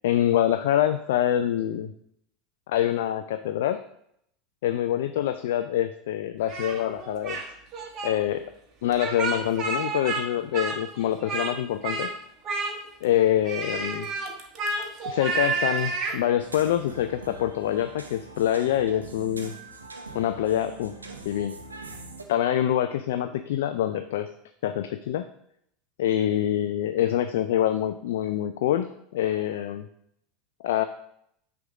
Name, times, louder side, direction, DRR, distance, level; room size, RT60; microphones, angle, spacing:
voice 1, 0.0-1.9 2.7-3.8 4.6-7.4 8.0-8.4 8.8-12.1 13.0-14.1 15.1-19.5 20.1-20.9 21.3-21.6 22.3-24.3 24.6-25.3 26.0-29.9 30.6-30.8, left 11 dB, 65° left, 9 dB, 0.3 m, -25 dB
Speech, 6.5-7.5 7.7-8.1 8.9-10.2 10.5-11.5 11.8-12.1 12.4-13.0 13.4-16.2, right 4 dB, 40° right, 1.3 m, -30 dB
sound 1, 16.4-22.2, right 3 dB, 85° right, 0.7 m, -43 dB
6.2 x 3.5 x 6.0 m, 0.73 s
figure-of-eight pair, 75°, 0 cm